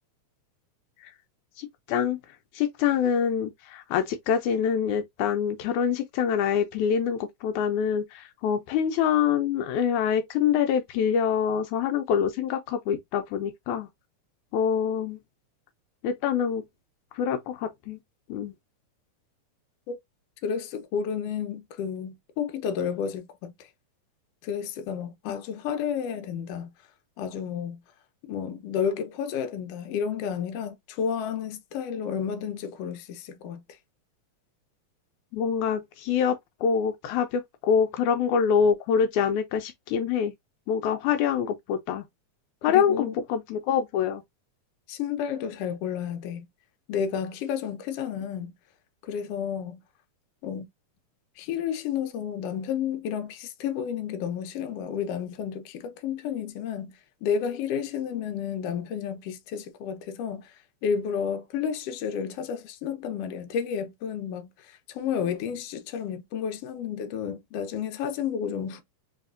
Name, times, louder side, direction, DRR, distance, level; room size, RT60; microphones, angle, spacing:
voice 1, 1.6-2.2 2.6-13.9 14.5-15.2 16.0-16.6 17.2-18.0 18.3-18.5 35.3-40.3 40.7-42.0 42.6-44.2, left 7 dB, 80° left, 2.0 m, -25 dB
voice 2, 20.4-23.7 24.4-26.7 27.2-27.8 28.3-33.6 42.7-43.2 44.9-46.5 46.9-48.5 49.0-49.8 50.4-50.7 51.4-60.5 60.8-68.8, left 7 dB, 65° left, 1.7 m, -31 dB
4.0 x 3.5 x 2.5 m
omnidirectional pair, 3.5 m